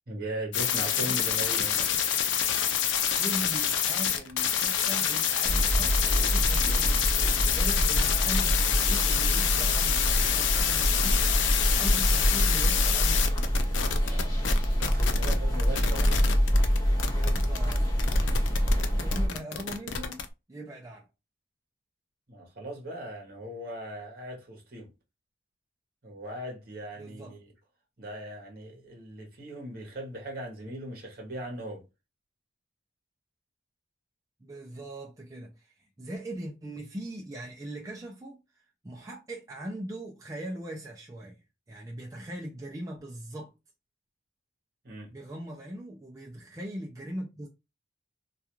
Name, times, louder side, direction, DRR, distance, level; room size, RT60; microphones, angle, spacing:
voice 1, 0.1-1.9 14.0-16.1 18.4-18.5 22.3-24.9 26.0-27.5 28.0-31.8 44.8-45.1, right 1 dB, 50° right, 0.9 m, -39 dB
sound 1, 0.5-15.3 15.6-20.2, left 8 dB, 70° left, 0.4 m, -27 dB
voice 2, 0.8-1.2 3.2-13.4 16.0-16.3 17.1-17.8 19.0-21.1 27.0-27.4 34.4-41.4 41.7-43.5 45.1-47.5, right 1 dB, 15° right, 0.4 m, -40 dB
sound 2, 5.4-19.3, equal, 20° left, 0.7 m, -26 dB
2.3 x 2.3 x 2.9 m
head